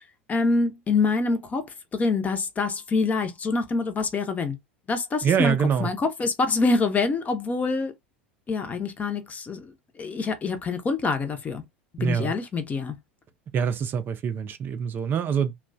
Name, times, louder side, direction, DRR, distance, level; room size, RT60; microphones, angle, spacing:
voice 1, 0.3-4.6 4.9-7.9 8.5-11.6 12.0-13.0, left 3 dB, 25° left, 0.7 m, -26 dB
voice 2, 5.2-5.9 12.0-12.3 13.5-15.5, right 7 dB, 35° right, 0.5 m, -25 dB
3.0 x 2.2 x 2.5 m
figure-of-eight pair, 80°, 6 cm